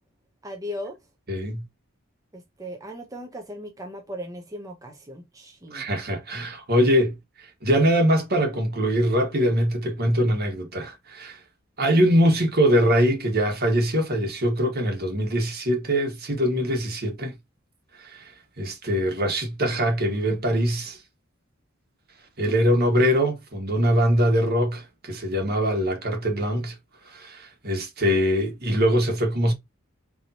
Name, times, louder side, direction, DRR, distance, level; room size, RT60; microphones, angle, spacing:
voice 1, 0.4-1.0 2.3-5.8, equal, 15° right, 0.7 m, -37 dB
voice 2, 1.3-1.6 5.7-7.1 7.6-11.4 11.8-17.3 18.0-18.3 18.6-21.0 22.4-26.7 27.1-29.5, equal, 50° right, 1.5 m, -22 dB
4.1 x 3.4 x 2.7 m
head